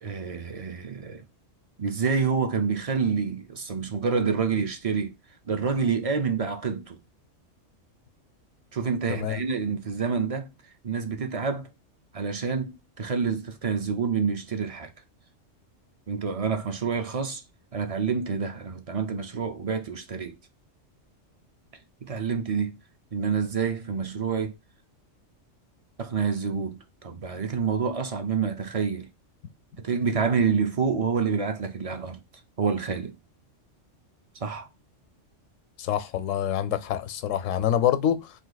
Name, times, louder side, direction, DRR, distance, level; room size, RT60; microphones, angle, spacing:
voice 1, 0.0-1.2 1.8-5.1 5.4-7.0 8.7-10.5 10.8-11.7 12.1-14.9 16.1-17.4 17.7-20.4 22.0-22.8 23.1-24.5 26.0-29.1 29.8-32.2 32.6-33.2 34.4-34.7, right 5 dB, 50° right, 0.4 m, -28 dB
voice 2, 35.8-38.3, left 10 dB, 85° left, 0.9 m, -26 dB
3.4 x 2.7 x 3.8 m
omnidirectional pair, 1.3 m